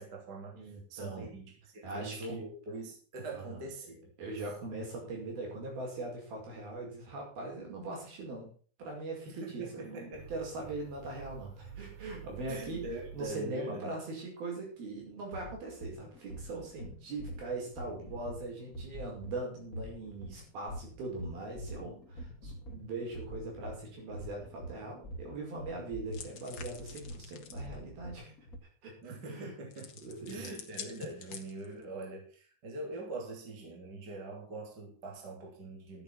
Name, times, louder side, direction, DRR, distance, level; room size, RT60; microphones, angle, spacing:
voice 1, 0.0-0.6 0.9-4.1 4.4-4.5 9.3-10.3 12.5-13.9 29.0-29.9 30.3-36.0, right 2 dB, 30° right, 1 dB, 3.2 m, -43 dB
voice 2, 0.6-1.4 1.8-2.5 3.3-3.6 4.2-8.5 8.8-12.8 13.1-28.3 28.8-28.9 29.3-29.5 30.0-30.5, right 2 dB, 65° right, 0 dB, 7.3 m, -41 dB
sound 1, 10.1-13.9, right 7 dB, 45° right, 6.3 m, -49 dB
sound 2, 15.0-28.6, equal, 40° left, 1.3 m, -45 dB
sound 3, 26.1-27.7 29.7-31.8, left 7 dB, 65° left, 1.1 m, -48 dB
13.0 x 9.0 x 5.9 m, 0.42 s
omnidirectional pair, 4.6 m